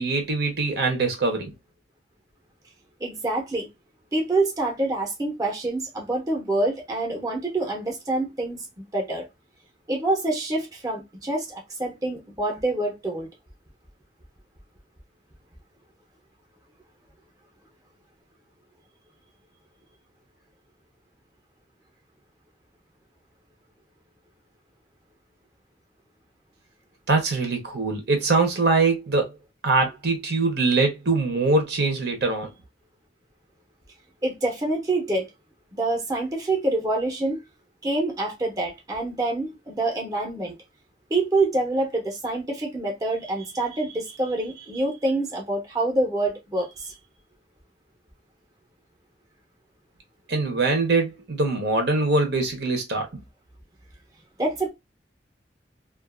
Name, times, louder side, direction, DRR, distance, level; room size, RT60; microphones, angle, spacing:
voice 1, 0.0-1.5 27.1-29.3 29.6-32.5 50.3-53.1, right 3 dB, 65° right, 0.9 m, -23 dB
voice 2, 3.0-3.7 4.1-8.7 8.9-9.3 9.9-13.3 34.2-35.3 35.7-37.4 37.8-40.5 41.1-46.9 54.4-54.7, right 2 dB, 20° right, 0.8 m, -26 dB
2.5 x 2.5 x 2.3 m
head